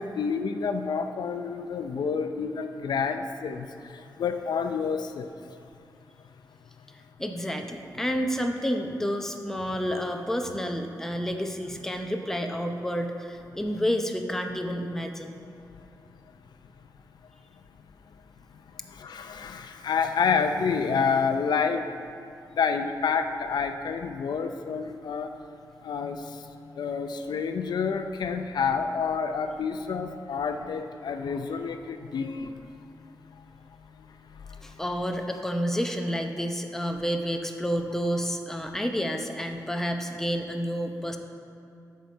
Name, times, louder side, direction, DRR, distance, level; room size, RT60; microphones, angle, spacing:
voice 1, 0.0-5.3 18.8-22.0 22.6-25.3 25.8-26.5 26.8-32.5 34.5-34.7, left 5 dB, 75° left, 7 dB, 0.5 m, -29 dB
voice 2, 7.2-15.3 34.6-41.2, equal, 5° left, 4 dB, 0.7 m, -30 dB
10.5 x 6.6 x 4.5 m, 2.5 s
wide cardioid pair, 95°, 7 cm